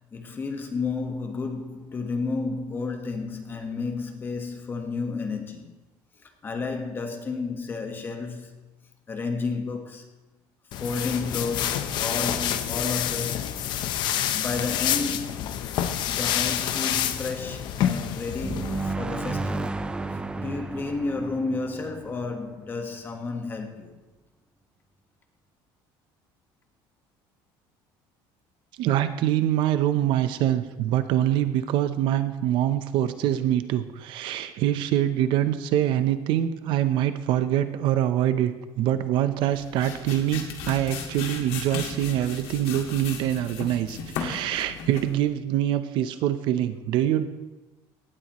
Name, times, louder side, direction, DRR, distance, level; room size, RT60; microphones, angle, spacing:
voice 1, 0.1-5.7 6.4-8.6 9.1-10.1 10.8-13.6 14.3-15.4 16.0-19.7 20.4-23.9, left 4 dB, 20° left, 1.4 m, -31 dB
sound 1, 10.7-18.9, left 10 dB, 50° left, 0.8 m, -28 dB
sound 2, 18.4-23.0, right 3 dB, 10° right, 0.4 m, -33 dB
voice 2, 28.8-47.3, right 12 dB, 60° right, 0.7 m, -24 dB
sound 3, 39.4-45.2, left 6 dB, 70° left, 1.9 m, -36 dB
17.5 x 12.5 x 3.1 m
cardioid pair, 165°, 10 cm